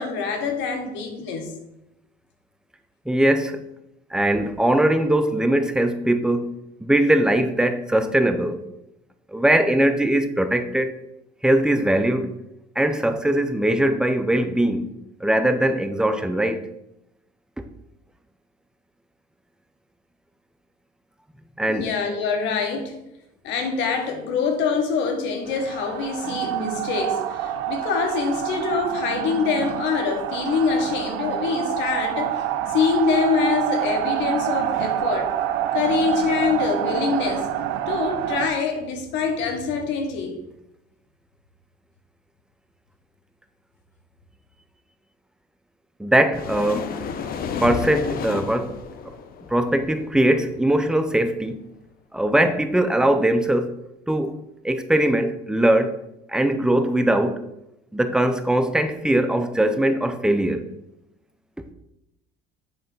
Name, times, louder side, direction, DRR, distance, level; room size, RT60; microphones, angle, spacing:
voice 1, 0.0-1.5 21.7-22.9 23.4-32.4 32.7-35.3 35.7-37.5 37.9-40.4, left 5 dB, 75° left, 1.4 m, -25 dB
voice 2, 3.1-3.6 4.1-6.5 6.8-8.6 9.3-10.9 11.4-12.4 12.8-14.9 15.2-16.7 21.6-21.9 46.0-47.0 47.6-48.8 49.5-51.6 52.1-53.7 54.1-54.4 54.6-56.0 56.3-57.4 57.9-60.7, right 1 dB, 5° right, 0.5 m, -21 dB
sound 1, 25.5-38.5, right 11 dB, 80° right, 0.6 m, -27 dB
sound 2, 46.3-50.7, left 6 dB, 50° left, 0.7 m, -32 dB
7.8 x 3.4 x 5.4 m
cardioid pair, 115°, 19 cm